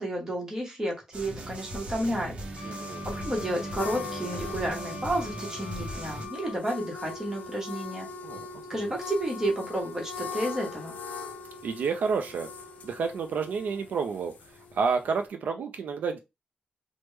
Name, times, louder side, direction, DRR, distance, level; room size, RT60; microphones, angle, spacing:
voice 1, 0.0-2.6 3.0-8.1 8.7-11.0, right 1 dB, 15° right, 1.0 m, -31 dB
sound 1, 1.1-6.3, right 1 dB, 45° right, 0.7 m, -38 dB
Wind instrument woodwind instrument, 2.6-6.6, left 8 dB, 25° left, 0.7 m, -44 dB
voice 2, 2.6-3.1 8.2-8.5 11.6-12.5 12.8-14.3 14.7-16.2, right 5 dB, 75° right, 0.4 m, -29 dB
sound 2, 2.8-15.2, left 4 dB, 65° left, 0.5 m, -41 dB
3.4 x 2.1 x 3.1 m
wide cardioid pair, 170°, 3 cm